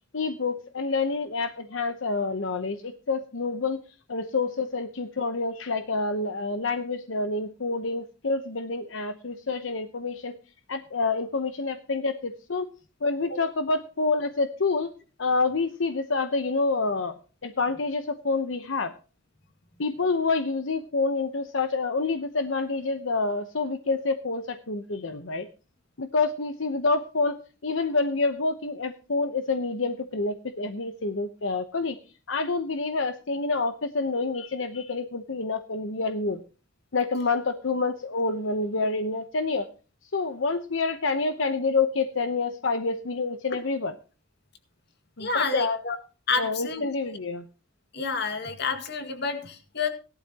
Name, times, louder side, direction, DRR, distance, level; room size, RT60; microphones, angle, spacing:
voice 1, 0.1-3.8 4.1-10.3 10.7-12.7 13.0-14.9 15.2-17.1 17.4-18.9 19.8-25.5 26.0-27.4 27.6-32.0 32.3-36.4 36.9-39.7 40.1-43.9 45.2-45.8 46.4-47.5, left 3 dB, 80° left, 8 dB, 0.9 m, -27 dB
voice 2, 45.2-46.0 46.3-47.2 47.9-49.9, left 4 dB, 60° left, 7 dB, 2.1 m, -29 dB
17.5 x 12.0 x 2.9 m, 0.35 s
head